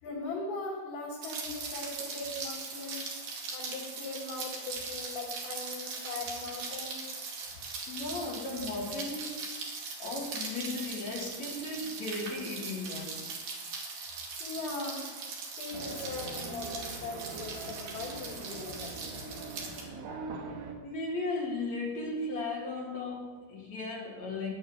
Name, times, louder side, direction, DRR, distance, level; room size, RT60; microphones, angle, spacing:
voice 1, 0.0-3.2 3.5-7.0 14.4-15.3 15.6-19.0, left 3 dB, 80° left, 5.5 m, -40 dB
Rain, 1.2-19.8, right 4 dB, 60° right, 3.9 m, -40 dB
voice 2, 7.9-9.4 10.0-13.3 20.8-24.5, left 2 dB, 50° left, 2.9 m, -36 dB
sound 1, 15.7-20.7, right 3 dB, 80° right, 3.7 m, -42 dB
17.0 x 11.5 x 5.6 m
omnidirectional pair, 4.6 m